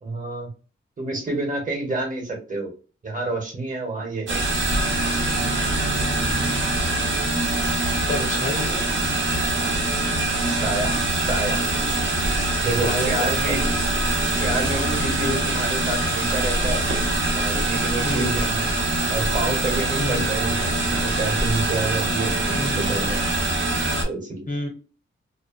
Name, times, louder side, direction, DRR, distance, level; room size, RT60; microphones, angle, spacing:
voice 1, 0.0-0.5 1.0-2.7 3.0-4.4 9.5-10.9 11.2-11.6 12.6-13.8 14.4-16.8 17.3-18.7 19.1-23.2 24.0-24.5, right 2 dB, 40° right, 0 dB, 1.0 m, -28 dB
sound 1, 4.3-24.0, right 2 dB, 65° right, 0.8 m, -23 dB
voice 2, 8.1-8.7 12.8-13.6 15.2-15.4 18.0-18.4 20.0-20.4 22.5-22.8 24.5-24.7, left 2 dB, 40° left, 1 dB, 0.8 m, -29 dB
2.6 x 2.1 x 2.4 m, 0.35 s
wide cardioid pair, 125°, 21 cm